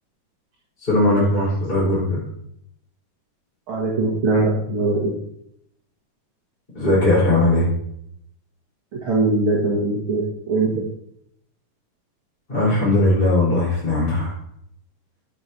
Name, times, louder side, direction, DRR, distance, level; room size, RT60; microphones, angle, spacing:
voice 1, 0.8-2.2 6.7-7.7 12.5-14.3, left 2 dB, 15° left, -9 dB, 4.2 m, -19 dB
voice 2, 3.7-5.1 8.9-10.7, right 2 dB, 45° right, -5 dB, 2.3 m, -21 dB
13.5 x 7.4 x 2.8 m, 0.71 s
omnidirectional pair, 3.8 m